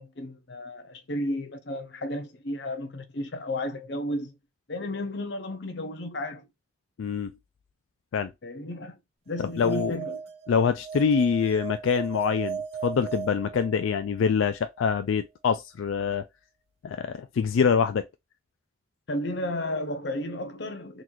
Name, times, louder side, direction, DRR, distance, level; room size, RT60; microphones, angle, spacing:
voice 1, 0.0-4.3 4.7-6.5 8.4-9.0 9.3-10.2 19.1-21.0, left 1 dB, 60° left, 0.7 m, -33 dB
voice 2, 7.0-7.3 8.1-8.3 9.4-10.0 10.5-16.2 16.8-18.0, left 6 dB, 85° left, 0.4 m, -25 dB
sound 1, 9.4-14.2, right 7 dB, 30° right, 0.7 m, -37 dB
3.9 x 3.0 x 2.6 m
head